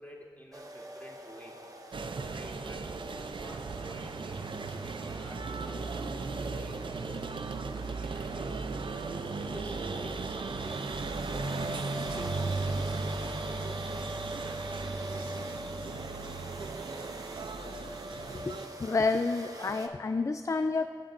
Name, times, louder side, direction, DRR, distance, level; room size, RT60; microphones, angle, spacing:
voice 1, 0.0-1.5 2.1-5.9 6.2-8.8 9.4-10.9 11.2-12.9, equal, 20° left, -5 dB, 3.0 m, -49 dB
sound 1, 0.5-19.9, equal, 45° right, 1.0 m, -44 dB
sound 2, 1.9-18.7, right 4 dB, 90° right, 0.5 m, -36 dB
voice 2, 18.3-20.9, left 3 dB, 40° left, 9 dB, 0.3 m, -29 dB
22.5 x 8.3 x 2.6 m, 2.3 s
wide cardioid pair, 45°, 8 cm